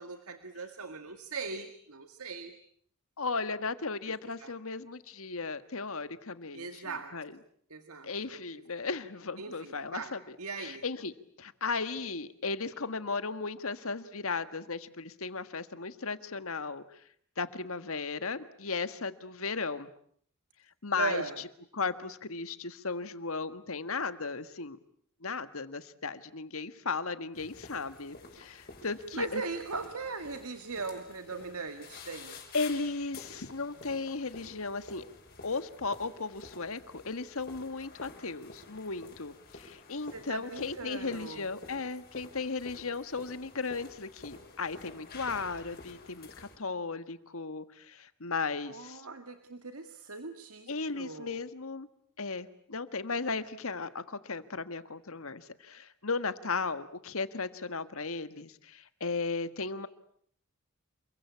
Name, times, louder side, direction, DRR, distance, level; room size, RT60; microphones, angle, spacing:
voice 1, 0.0-2.5 4.4-4.5 6.5-7.2 7.7-8.4 9.4-10.8 20.9-21.4 29.1-32.4 40.1-41.5 48.7-51.4, right 4 dB, 80° right, 8 dB, 1.9 m, -39 dB
voice 2, 3.2-7.3 8.0-11.1 11.4-16.8 17.4-19.9 20.8-21.5 21.7-24.8 25.2-29.4 32.5-35.0 35.4-49.0 50.7-51.9 52.2-59.9, left 4 dB, 70° left, 12 dB, 1.7 m, -36 dB
sound 1, 27.3-46.6, left 3 dB, 45° left, 5.9 m, -50 dB
28.5 x 23.0 x 8.5 m, 0.63 s
head